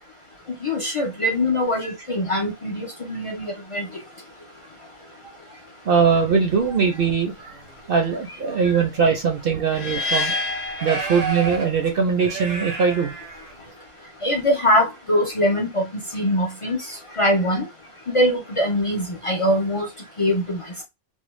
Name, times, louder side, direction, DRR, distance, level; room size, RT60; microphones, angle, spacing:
voice 1, 0.6-3.9 8.7-8.8 14.2-15.8 16.1-17.6 18.1-19.9 20.2-20.6, left 1 dB, 50° left, 0.4 m, -22 dB
voice 2, 5.9-7.5 7.9-10.4 10.8-13.1, right 6 dB, 60° right, 0.7 m, -21 dB
sound 1, 7.2-7.8 8.6-8.7 9.2-9.3 10.0-10.1 10.7-13.7, right 4 dB, 85° right, 1.2 m, -32 dB
sound 2, 9.7-11.9, left 2 dB, 65° left, 0.8 m, -28 dB
2.6 x 2.1 x 3.0 m
omnidirectional pair, 1.3 m